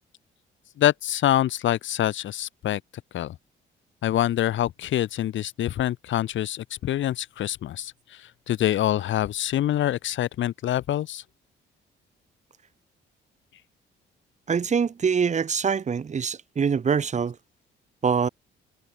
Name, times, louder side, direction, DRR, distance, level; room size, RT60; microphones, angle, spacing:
voice 1, 0.8-2.8 3.1-3.4 4.0-11.2, left 12 dB, 75° left, 2.1 m, -25 dB
voice 2, 14.5-17.4 18.0-18.3, right 6 dB, 35° right, 1.2 m, -24 dB
cardioid pair, 90°, 20 cm